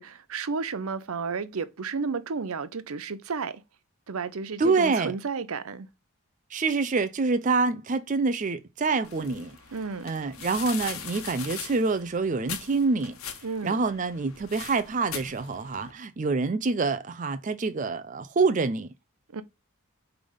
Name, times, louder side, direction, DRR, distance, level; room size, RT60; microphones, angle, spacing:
voice 1, 0.0-3.6 4.1-5.9 9.7-10.1 13.4-13.8 19.3-19.4, right 5 dB, 80° right, 0.7 m, -32 dB
voice 2, 4.6-5.1 6.5-9.5 10.0-13.2 13.6-18.9, right 4 dB, 35° right, 0.4 m, -26 dB
sound 1, 9.0-15.9, left 7 dB, 80° left, 1.2 m, -41 dB
5.0 x 3.5 x 5.4 m
head